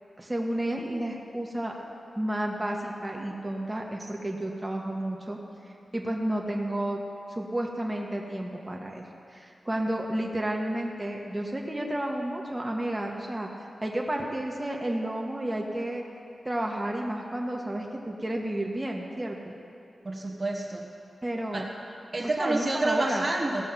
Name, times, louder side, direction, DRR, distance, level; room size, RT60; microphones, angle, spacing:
voice 1, 0.2-1.8 2.1-5.4 5.9-7.0 7.3-13.5 13.8-16.0 16.4-19.5 21.2-21.6 22.4-23.2, right 1 dB, 20° right, -1 dB, 1.5 m, -31 dB
voice 2, 20.0-20.9 21.5-21.7 22.1-23.6, right 2 dB, 40° right, -2 dB, 1.5 m, -28 dB
17.0 x 6.3 x 5.9 m, 2.6 s
cardioid pair, 45°, 0 cm